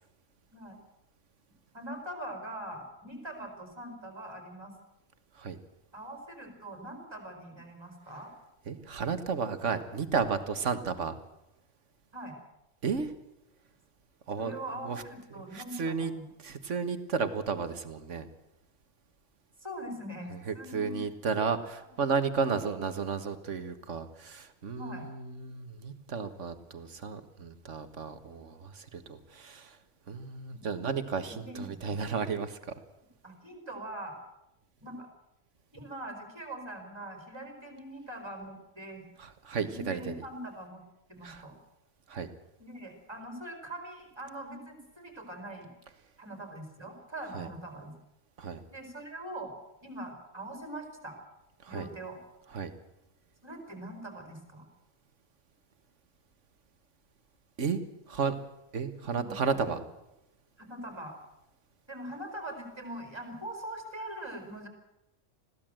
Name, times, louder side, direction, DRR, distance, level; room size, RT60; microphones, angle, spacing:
voice 1, 1.7-4.7 5.9-8.3 12.1-12.4 14.4-16.3 19.6-21.0 22.4-22.6 24.8-25.0 30.5-30.7 31.4-32.1 33.2-34.2 34.8-35.1 35.7-39.0 39.6-40.8 41.1-41.6 42.6-45.7 46.2-47.9 48.7-49.5 49.8-51.2 51.7-52.2 53.4-54.7 59.0-59.7 60.6-61.2 61.9-64.7, right 1 dB, 20° right, 5 dB, 4.7 m, -42 dB
voice 2, 8.7-11.2 12.8-13.1 14.3-14.6 14.9-15.0 15.5-16.1 16.4-18.3 20.5-29.8 30.1-32.7 39.2-40.1 41.2-41.4 42.1-42.3 47.3-47.5 48.4-48.6 51.6-51.9 52.5-52.7 57.6-57.8 58.1-58.4 58.7-59.8, right 5 dB, 80° right, 10 dB, 1.8 m, -33 dB
21.5 x 16.0 x 7.7 m, 0.90 s
omnidirectional pair, 1.2 m